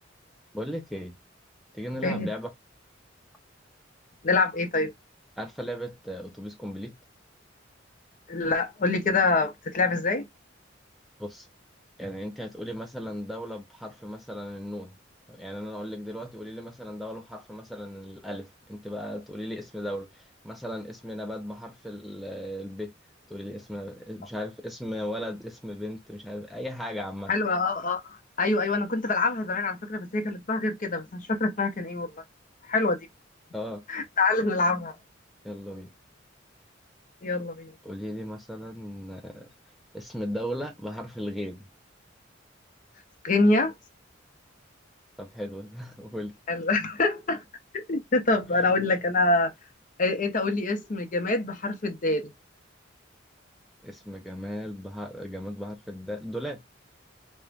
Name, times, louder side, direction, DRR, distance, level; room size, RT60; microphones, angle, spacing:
voice 1, 0.5-1.1 1.7-2.5 5.4-6.9 11.2-11.5 12.0-15.0 15.3-22.9 23.3-27.3 33.5-33.8 35.4-35.9 37.8-39.5 39.9-41.7 45.2-46.3 53.8-56.6, equal, ahead, 0.4 m, -36 dB
voice 2, 4.2-4.9 8.3-10.3 27.3-28.0 28.4-32.2 32.7-33.0 33.9-34.9 37.2-37.7 43.2-43.7 46.5-47.4 47.7-49.5 50.0-52.3, left 3 dB, 45° left, 0.6 m, -25 dB
2.4 x 2.1 x 3.1 m
head